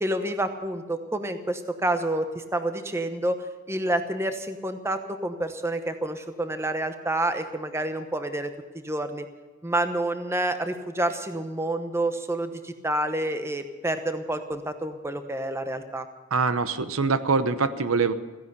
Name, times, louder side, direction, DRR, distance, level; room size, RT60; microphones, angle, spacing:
voice 1, 0.0-3.4 3.7-8.5 8.8-9.3 9.6-16.1, right 1 dB, 10° right, 8 dB, 0.9 m, -28 dB
voice 2, 16.3-18.1, right 4 dB, 70° right, 12 dB, 0.9 m, -24 dB
16.0 x 10.5 x 8.1 m, 1.3 s
head